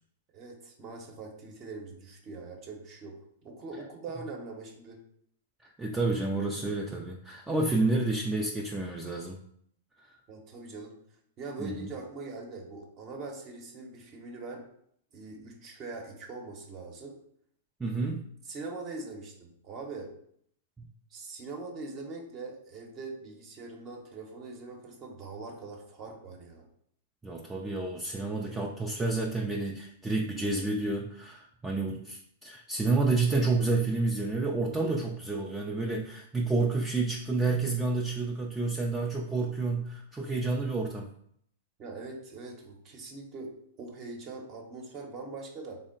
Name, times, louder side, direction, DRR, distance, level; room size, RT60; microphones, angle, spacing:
voice 1, 0.3-5.0 10.3-11.0 11.4-14.6 15.1-17.1 18.5-20.1 21.1-26.6 41.8-43.5 43.8-45.8, right 3 dB, 35° right, 1 dB, 0.8 m, -42 dB
voice 2, 5.6-9.4 10.0-10.2 11.6-11.9 17.8-18.2 20.8-20.9 27.2-41.1, right 3 dB, 10° right, -1 dB, 0.4 m, -30 dB
3.6 x 2.0 x 3.8 m, 0.67 s
hypercardioid pair, 125°, 0 cm